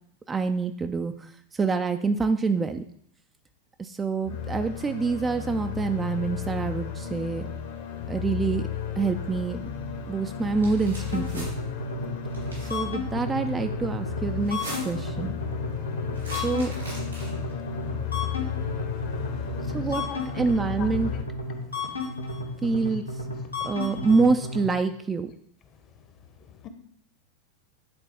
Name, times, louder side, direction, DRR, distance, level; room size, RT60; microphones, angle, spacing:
voice 1, 0.3-2.8 3.8-7.5 8.1-8.7 9.0-9.7 10.1-11.5 12.6-15.3 16.3-16.7 19.7-20.0 20.3-21.1 22.6-23.0 23.7-25.3, right 4 dB, 15° right, 7 dB, 0.4 m, -26 dB
sound 1, 4.2-21.2, left 8 dB, 55° left, 1.0 m, -34 dB
sound 2, 10.5-11.5 12.3-12.8 14.4-15.1 16.1-17.5, right 1 dB, 80° right, 3.2 m, -40 dB
sound 3, 11.1-24.6, left 2 dB, 85° left, 1.4 m, -33 dB
voice 2, 19.3-19.5 20.1-20.2 20.8-20.9 23.4-23.5 26.4-26.7, left 7 dB, 30° left, 8 dB, 0.8 m, -41 dB
9.5 x 4.1 x 3.5 m, 0.65 s
figure-of-eight pair, 90°, 0 cm